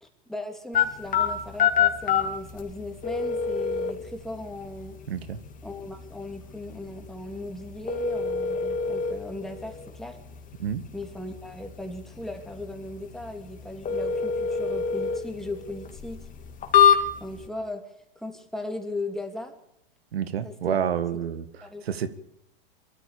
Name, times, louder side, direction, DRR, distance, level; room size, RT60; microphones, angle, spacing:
voice 1, 0.0-5.0 5.6-10.2 10.9-16.2 17.2-17.8 18.1-19.5 20.4-20.8 21.1-21.2 21.6-22.1, left 2 dB, ahead, 3 dB, 3.0 m, -37 dB
sound 1, 0.7-17.5, left 7 dB, 25° left, 2.8 m, -27 dB
voice 2, 5.1-5.4 10.6-10.8 20.1-21.4 21.9-22.1, right 8 dB, 90° right, 13 dB, 1.7 m, -28 dB
22.5 x 14.5 x 8.6 m, 0.80 s
hypercardioid pair, 125°, 30 cm